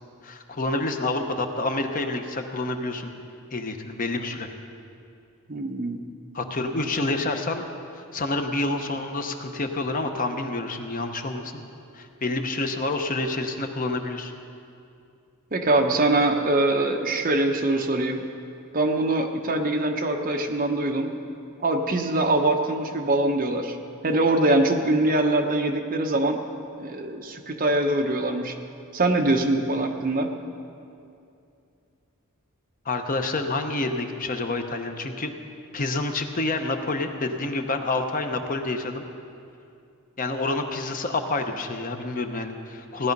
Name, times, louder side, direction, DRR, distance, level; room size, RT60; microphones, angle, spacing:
voice 1, 0.2-3.1 3.5-4.5 6.3-7.6 7.9-11.6 11.9-14.3 32.8-35.3 35.7-39.0 40.2-43.1, left 2 dB, 40° left, 5 dB, 0.8 m, -28 dB
voice 2, 5.5-6.0 15.5-18.2 18.7-21.1 21.6-23.8 24.0-26.4 26.8-28.5 28.9-30.3, right 2 dB, 40° right, 4 dB, 0.9 m, -23 dB
16.5 x 11.0 x 5.3 m, 2.6 s
head